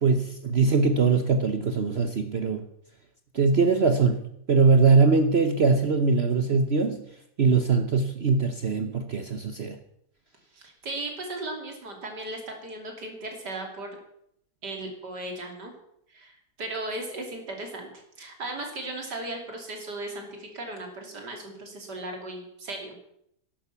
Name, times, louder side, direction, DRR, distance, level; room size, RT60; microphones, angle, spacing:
voice 1, 0.0-2.6 3.3-4.2 4.5-7.0 7.4-9.8, right 4 dB, 45° right, 6 dB, 1.0 m, -22 dB
voice 2, 10.5-14.0 14.6-15.7 16.1-17.9 18.2-23.1, right 2 dB, 80° right, 3 dB, 3.5 m, -36 dB
12.0 x 11.5 x 7.0 m, 0.74 s
omnidirectional pair, 1.8 m